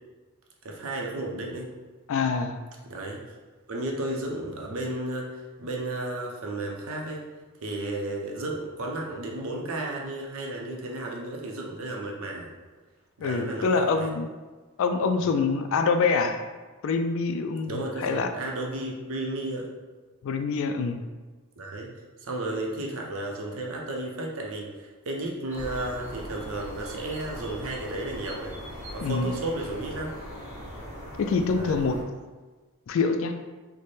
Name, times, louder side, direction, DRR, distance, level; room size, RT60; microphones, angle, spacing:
voice 1, 0.6-1.7 2.8-3.2 3.7-5.3 5.6-7.3 7.6-12.5 13.2-14.1 17.6-19.7 21.6-21.9 22.2-28.6 28.9-30.2 31.5-31.8, right 2 dB, 65° right, -1 dB, 0.6 m, -33 dB
voice 2, 2.1-2.6 13.2-14.3 14.8-16.4 16.8-18.3 20.2-21.0 29.0-29.4 31.2-32.0 32.9-33.3, left 4 dB, 60° left, 7 dB, 0.3 m, -25 dB
sound 1, 25.5-32.0, equal, 10° right, 1.1 m, -40 dB
3.2 x 2.1 x 4.1 m, 1.3 s
head